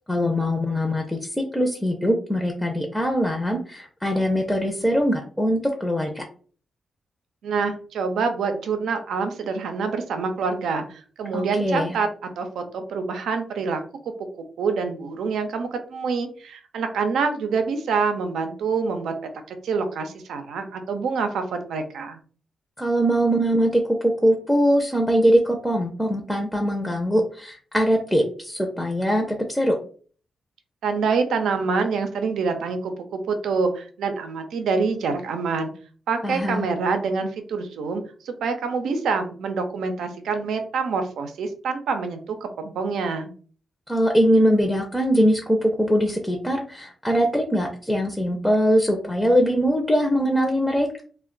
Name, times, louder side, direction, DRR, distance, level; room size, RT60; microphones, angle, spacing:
voice 1, 0.0-6.2 11.3-12.0 22.8-29.8 36.2-36.7 43.9-51.0, equal, 5° left, 2 dB, 0.6 m, -22 dB
voice 2, 7.4-12.1 12.4-13.8 14.6-22.2 30.8-35.7 36.1-43.3, right 5 dB, 85° right, 7 dB, 0.5 m, -26 dB
2.2 x 2.1 x 3.8 m, 0.43 s
cardioid pair, 60°, 0 cm